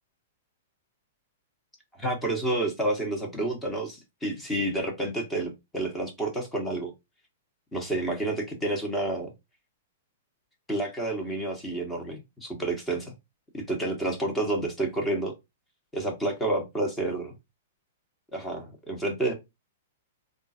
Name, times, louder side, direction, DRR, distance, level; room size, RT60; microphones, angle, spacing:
voice 1, 2.0-6.9 7.7-9.3 10.7-13.1 13.5-15.3 15.9-17.3 18.3-19.3, right 2 dB, 10° left, 2 dB, 1.3 m, -29 dB
3.7 x 2.5 x 4.2 m, 0.21 s
hypercardioid pair, 135°, 0 cm